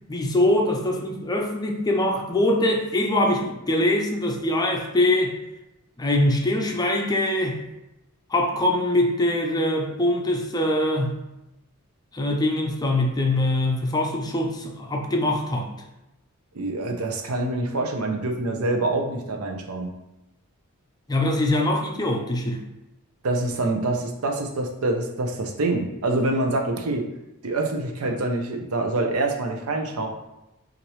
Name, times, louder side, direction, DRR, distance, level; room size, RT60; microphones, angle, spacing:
voice 1, 0.1-5.4 6.0-7.6 8.3-11.2 12.1-15.7 21.1-22.6, left 1 dB, 20° left, 2 dB, 0.5 m, -23 dB
voice 2, 16.5-19.9 23.2-27.1 27.4-30.1, right 2 dB, 85° right, 3 dB, 0.7 m, -26 dB
5.9 x 2.6 x 3.1 m, 0.92 s
head